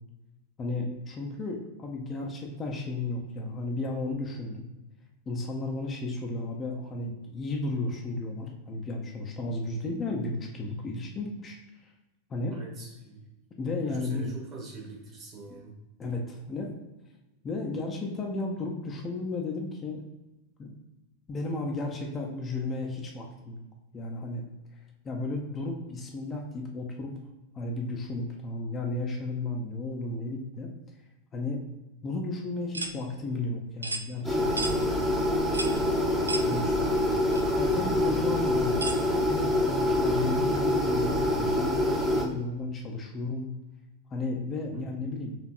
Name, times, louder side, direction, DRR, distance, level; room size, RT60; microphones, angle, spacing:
voice 1, 0.6-4.7 5.3-11.9 12.3-12.6 13.6-14.4 16.0-16.7 17.4-20.0 20.6-20.7 21.3-23.6 23.9-24.4 25.0-27.2 27.5-30.7 31.3-31.6 32.0-34.8 36.5-36.6 37.5-38.8 39.3-43.5 44.1-45.4, left 2 dB, 25° left, 0 dB, 0.7 m, -33 dB
voice 2, 12.5-13.3 13.8-15.7 36.4-39.1 44.7-45.0, right 2 dB, 30° right, -1 dB, 1.4 m, -42 dB
sound 1, 32.7-33.0 33.8-34.1 34.6-34.8 35.5-35.8 36.3-36.5 37.3-37.4 38.8-39.0, right 2 dB, 80° right, 0.3 m, -32 dB
sound 2, 34.2-42.2, left 1 dB, 5° right, 0.9 m, -26 dB
4.2 x 3.0 x 3.0 m, 1.0 s
figure-of-eight pair, 90°, 0 cm